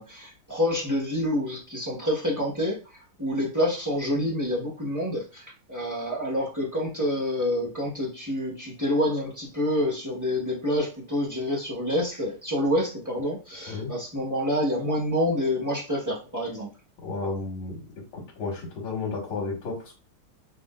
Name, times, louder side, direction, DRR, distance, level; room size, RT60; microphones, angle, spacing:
voice 1, 0.0-2.8 3.2-16.7, left 1 dB, 10° right, -5 dB, 0.9 m, -27 dB
voice 2, 17.0-17.9 18.1-19.9, left 3 dB, 70° left, 0 dB, 2.3 m, -32 dB
6.1 x 2.9 x 2.5 m, 0.33 s
omnidirectional pair, 2.4 m